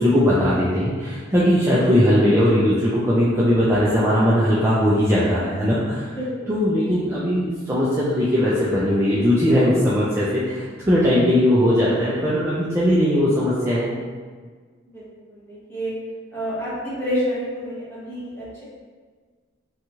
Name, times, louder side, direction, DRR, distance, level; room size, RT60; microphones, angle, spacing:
voice 1, 0.0-6.1 6.5-13.9, equal, 15° right, -9 dB, 0.3 m, -19 dB
voice 2, 6.1-6.5 14.9-15.0 15.3-15.9 16.3-18.6, equal, 10° left, -10 dB, 1.0 m, -28 dB
2.7 x 2.3 x 2.9 m, 1.5 s
head